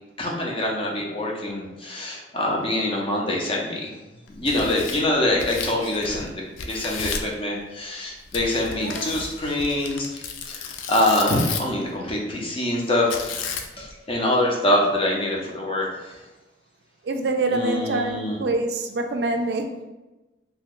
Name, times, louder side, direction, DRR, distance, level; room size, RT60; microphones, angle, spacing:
voice 1, 0.2-3.9 4.3-13.3 13.8-15.9 17.5-18.4, left 1 dB, 30° left, -2 dB, 0.6 m, -25 dB
Tearing, 4.3-6.3 6.6-7.3 8.3-11.8 13.1-13.9, left 5 dB, 90° left, 0.4 m, -33 dB
voice 2, 8.8-9.3 17.0-19.7, right 2 dB, 60° right, 4 dB, 0.3 m, -26 dB
2.9 x 2.2 x 3.7 m, 1.1 s
head